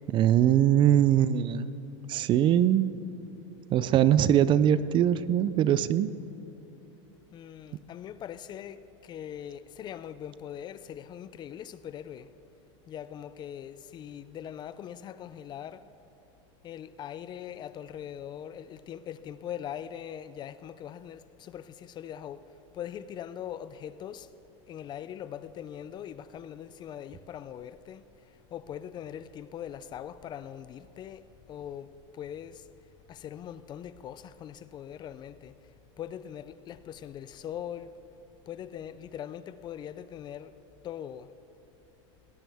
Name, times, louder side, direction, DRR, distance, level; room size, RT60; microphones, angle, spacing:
voice 1, 0.1-1.7 2.1-2.9 3.7-6.1, right 10 dB, 30° right, 0.4 m, -22 dB
voice 2, 7.3-12.3 12.9-15.8 16.6-22.5 22.7-24.3 24.7-31.2 31.5-32.6 33.1-35.5 36.0-37.9 38.5-40.6 40.8-41.3, left 10 dB, 30° left, 0.4 m, -41 dB
19.0 x 18.0 x 3.5 m
supercardioid pair, 135°, 16 cm